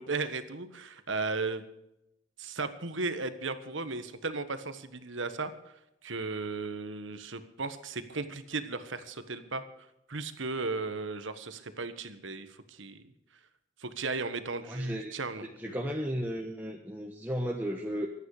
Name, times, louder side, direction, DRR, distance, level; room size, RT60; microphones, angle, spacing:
voice 1, 0.0-1.6 2.4-5.7 6.0-9.6 10.1-13.1 13.8-15.8, right 3 dB, 65° right, 10 dB, 1.4 m, -36 dB
voice 2, 14.7-15.1 15.6-18.1, equal, 10° right, 1 dB, 1.1 m, -34 dB
24.5 x 9.4 x 4.9 m, 0.86 s
head